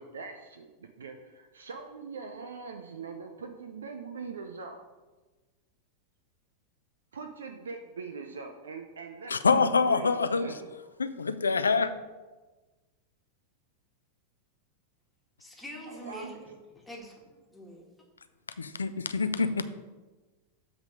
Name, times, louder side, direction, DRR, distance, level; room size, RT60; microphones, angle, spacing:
voice 1, 0.0-4.8 7.1-10.7 15.8-16.5, right 5 dB, 70° right, 5 dB, 0.5 m, -42 dB
voice 2, 9.3-10.6 11.0-11.9 18.6-19.6, left 4 dB, 75° left, 11 dB, 0.4 m, -26 dB
voice 3, 15.4-16.4 16.8-17.9, equal, 5° left, -2 dB, 1.5 m, -45 dB
7.3 x 3.5 x 6.3 m, 1.2 s
figure-of-eight pair, 90°, 0 cm